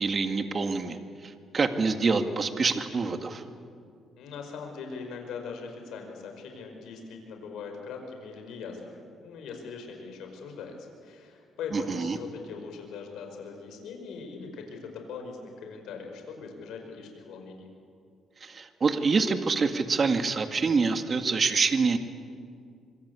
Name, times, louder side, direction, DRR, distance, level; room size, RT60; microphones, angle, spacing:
voice 1, 0.0-3.4 11.7-12.2 18.4-22.0, right 4 dB, 40° right, 7 dB, 2.1 m, -26 dB
voice 2, 4.2-17.7, left 5 dB, 85° left, 3 dB, 5.3 m, -41 dB
25.5 x 25.0 x 8.5 m, 2.3 s
cardioid pair, 90°, 0 cm